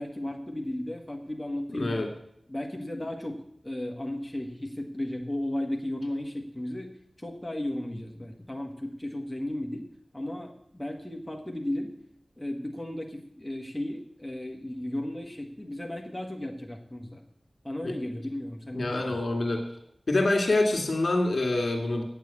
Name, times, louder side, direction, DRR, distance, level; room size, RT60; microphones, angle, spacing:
voice 1, 0.0-2.0 2.5-9.9 10.1-11.9 12.4-17.2 17.6-19.1, left 1 dB, 10° left, 1 dB, 1.6 m, -35 dB
voice 2, 1.8-2.1 18.7-19.6 20.1-22.0, left 2 dB, 65° left, 2 dB, 2.4 m, -25 dB
9.0 x 7.5 x 8.5 m, 0.73 s
wide cardioid pair, 65°, 0 cm